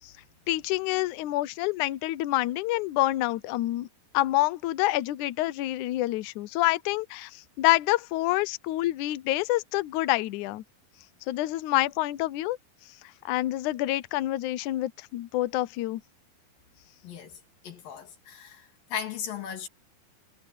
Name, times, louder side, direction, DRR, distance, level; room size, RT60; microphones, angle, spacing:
voice 1, 0.5-3.9 4.1-10.6 11.3-12.6 13.2-16.0, left 17 dB, 85° left, 1.7 m, -27 dB
voice 2, 17.0-19.7, left 8 dB, 60° left, 4.3 m, -37 dB
omnidirectional pair, 4.5 m